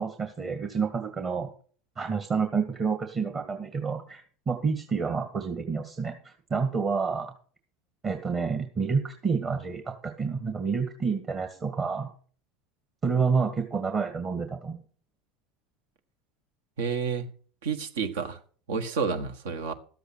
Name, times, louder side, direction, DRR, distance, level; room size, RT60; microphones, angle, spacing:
voice 1, 0.0-1.5 2.0-7.3 8.0-12.1 13.0-14.8, right 5 dB, 35° right, 1.8 m, -29 dB
voice 2, 16.8-17.3 17.6-18.4 18.7-19.7, right 5 dB, 75° right, 1.6 m, -30 dB
12.0 x 8.1 x 6.4 m
hypercardioid pair, 80°, 0 cm